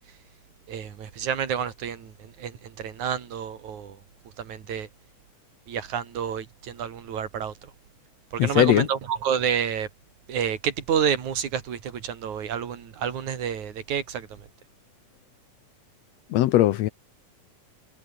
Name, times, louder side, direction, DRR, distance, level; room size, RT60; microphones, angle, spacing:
voice 1, 0.7-4.0 4.4-4.9 5.7-7.5 8.3-9.9 10.3-14.4, right 8 dB, 70° right, 3.7 m, -29 dB
voice 2, 8.4-8.9 16.3-16.9, left 14 dB, 70° left, 1.7 m, -19 dB
omnidirectional pair, 3.6 m